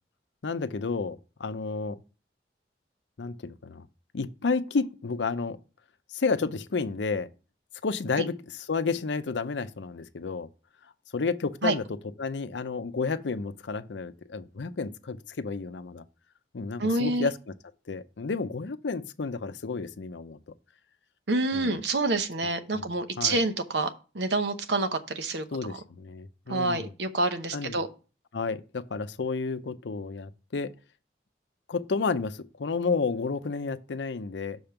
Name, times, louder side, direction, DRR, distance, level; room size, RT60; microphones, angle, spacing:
voice 1, 0.4-2.0 3.2-3.8 4.1-5.6 6.1-7.3 7.8-10.5 11.1-11.8 12.2-16.0 16.5-17.4 17.9-20.4 21.5-21.7 22.7-23.4 25.5-26.9 27.5-27.8 28.3-30.7 31.7-34.6, left 4 dB, 90° left, 0.6 m, -31 dB
voice 2, 16.8-17.3 21.3-25.4 26.5-27.9, right 2 dB, 75° right, 0.9 m, -27 dB
6.3 x 5.2 x 5.7 m
head